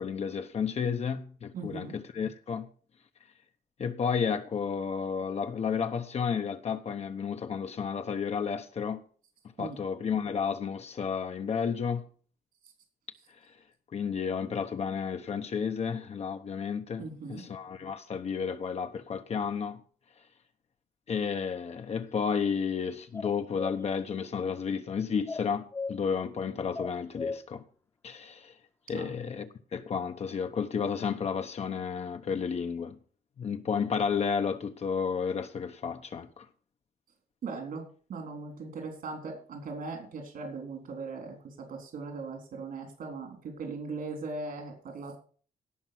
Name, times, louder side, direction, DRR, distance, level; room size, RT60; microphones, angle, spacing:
voice 1, 0.0-2.7 3.8-9.0 9.6-12.0 13.9-19.8 21.1-27.6 28.0-28.5 28.9-33.0 33.4-36.5, left 6 dB, 45° left, 0.9 m, -32 dB
voice 2, 1.5-2.0 9.6-9.8 17.0-17.4 28.9-29.1 37.4-45.2, right 4 dB, 75° right, 3.8 m, -39 dB
sound 1, 23.1-23.8 25.3-25.9 26.7-27.4, left 4 dB, 20° left, 0.9 m, -35 dB
17.0 x 6.0 x 6.0 m
wide cardioid pair, 155°, 15 cm